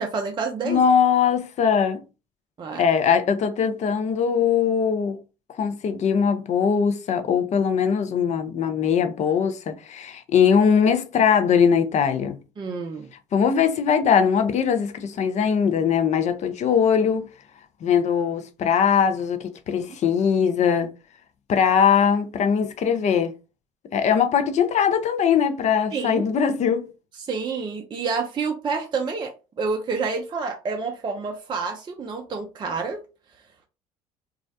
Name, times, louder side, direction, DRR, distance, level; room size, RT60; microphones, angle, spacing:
voice 1, 0.0-0.8 2.6-2.8 12.6-13.1 19.8-19.9 25.9-26.2 27.2-29.3 29.6-33.0, right 4 dB, 30° right, 0.4 m, -28 dB
voice 2, 0.6-2.0 2.8-5.2 5.6-12.4 13.3-17.3 17.8-20.9 21.5-23.3 23.9-26.9, left 7 dB, 45° left, 0.5 m, -21 dB
2.3 x 2.0 x 2.6 m
hypercardioid pair, 60°, 17 cm